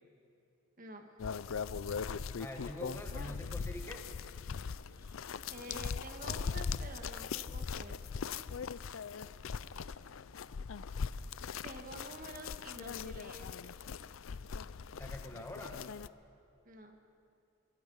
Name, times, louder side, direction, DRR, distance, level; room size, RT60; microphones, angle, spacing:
voice 1, 0.8-1.1 5.0-5.2 5.5-8.0 11.6-13.5 16.6-17.0, right 1 dB, 40° right, 4 dB, 1.8 m, -49 dB
sound 1, 1.2-16.1, left 5 dB, 80° left, 0.5 m, -40 dB
voice 2, 2.4-4.0 15.0-15.8, left 1 dB, 10° left, 3 dB, 1.6 m, -45 dB
26.5 x 22.0 x 5.6 m, 2.5 s
head